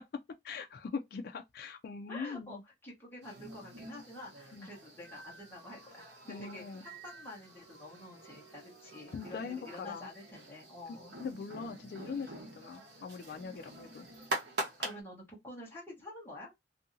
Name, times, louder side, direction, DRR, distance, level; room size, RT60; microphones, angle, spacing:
voice 1, 0.4-2.6 4.5-4.7 6.3-6.8 9.1-10.1 10.9-14.1, left 5 dB, 55° left, 0.3 m, -42 dB
voice 2, 2.1-11.1 13.5-13.6 14.8-16.5, left 1 dB, 10° left, 1.0 m, -48 dB
sound 1, 3.2-15.0, right 2 dB, 60° right, 0.9 m, -45 dB
2.7 x 2.6 x 2.5 m
head